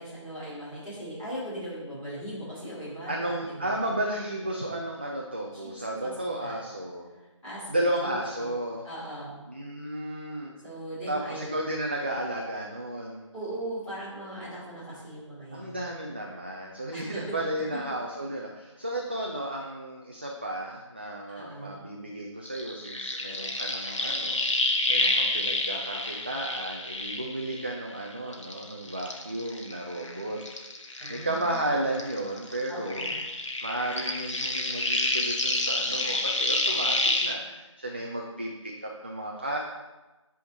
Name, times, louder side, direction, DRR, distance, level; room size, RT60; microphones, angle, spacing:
voice 1, 0.0-3.8 5.6-6.1 6.4-6.5 7.4-7.7 8.4-8.5 8.8-9.4 10.6-11.5 13.3-15.7 16.9-17.2 21.3-21.8 31.0-31.7 32.7-33.2, right 1 dB, 5° left, -14 dB, 2.3 m, -39 dB
voice 2, 3.1-7.1 7.7-8.9 9.5-10.5 11.1-13.3 15.5-30.4 31.1-33.1 33.6-39.6, right 1 dB, 20° right, -1 dB, 0.3 m, -33 dB
sound 1, 22.5-28.0 28.3-31.7 31.9-37.3, left 2 dB, 65° left, 1.1 m, -29 dB
10.5 x 3.5 x 3.9 m, 1.1 s
figure-of-eight pair, 160°, 17 cm